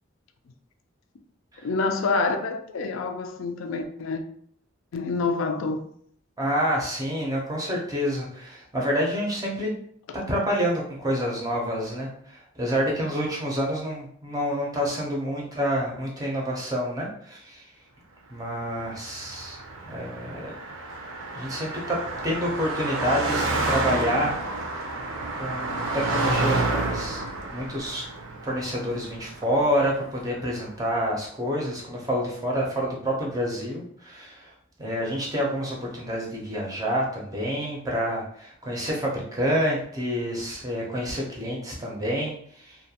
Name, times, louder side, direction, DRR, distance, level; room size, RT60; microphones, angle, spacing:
voice 1, 1.6-4.2 4.9-5.8, left 3 dB, 70° left, 0.3 m, -27 dB
voice 2, 6.4-9.7 10.1-17.6 18.3-19.6 19.9-20.5 21.3-22.0 22.2-24.3 25.3-27.2 27.5-28.0 28.4-34.5 34.8-42.8, equal, 15° right, 0.5 m, -28 dB
Car passing by, 18.8-30.3, right 2 dB, 80° right, 0.5 m, -30 dB
2.3 x 2.1 x 2.7 m
head